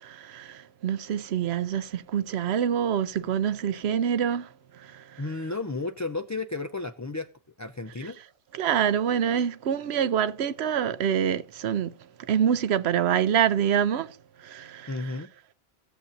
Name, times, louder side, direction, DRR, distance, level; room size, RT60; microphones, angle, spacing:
voice 1, 0.0-5.3 8.5-15.2, right 8 dB, 80° right, 0.9 m, -26 dB
voice 2, 5.2-7.3 7.6-8.2 14.9-15.3, left 3 dB, 25° left, 0.3 m, -33 dB
16.5 x 7.3 x 2.6 m
omnidirectional pair, 1.1 m